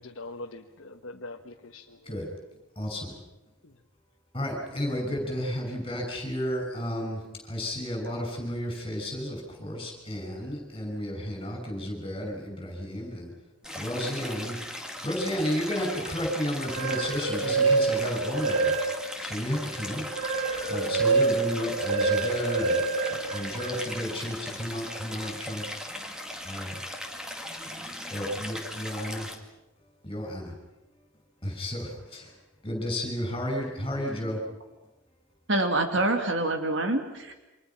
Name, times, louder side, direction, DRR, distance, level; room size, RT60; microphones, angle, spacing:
voice 1, 0.0-2.2 3.6-3.7, left 2 dB, 60° left, 3 dB, 1.3 m, -43 dB
voice 2, 2.8-3.2 4.3-13.3 13.7-14.6 15.0-18.8 19.2-20.1 20.7-22.8 23.3-25.7 26.4-26.8 28.1-29.3 30.0-30.6 31.4-32.3 32.6-34.4, equal, 25° left, 2 dB, 6.3 m, -32 dB
Stream, 13.6-29.4, left 1 dB, 5° right, 2.2 m, -38 dB
sound 1, 16.5-19.2 19.7-24.0, right 4 dB, 75° right, 5.4 m, -27 dB
voice 3, 35.5-37.3, right 2 dB, 55° right, 5 dB, 2.4 m, -26 dB
29.0 x 25.0 x 5.9 m, 0.99 s
head